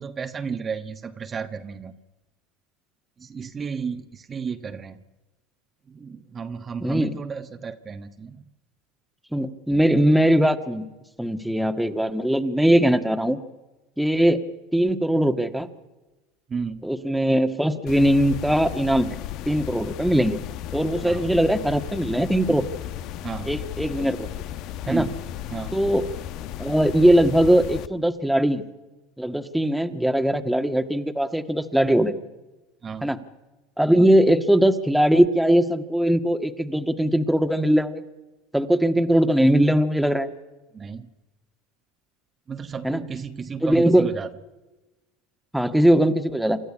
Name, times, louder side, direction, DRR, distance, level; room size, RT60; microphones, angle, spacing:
voice 1, 0.0-2.0 3.2-5.0 5.9-8.5 16.5-16.9 21.0-21.3 23.2-23.5 24.9-25.2 25.5-25.7 32.8-33.1 40.7-41.1 42.5-44.3, right 6 dB, 30° right, 7 dB, 1.3 m, -33 dB
voice 2, 6.8-7.1 9.3-10.9 11.2-13.4 14.0-14.4 14.7-15.7 16.8-19.2 19.4-20.4 20.7-22.7 23.4-24.3 24.9-25.1 25.7-26.1 26.6-28.6 29.2-32.1 33.0-33.2 33.8-38.0 38.5-40.3 42.8-43.0 43.6-44.1 45.5-46.6, right 1 dB, ahead, 7 dB, 1.7 m, -20 dB
sound 1, 17.9-27.9, left 12 dB, 60° left, 1.1 m, -35 dB
28.0 x 13.0 x 9.9 m, 1.1 s
supercardioid pair, 100°, 0 cm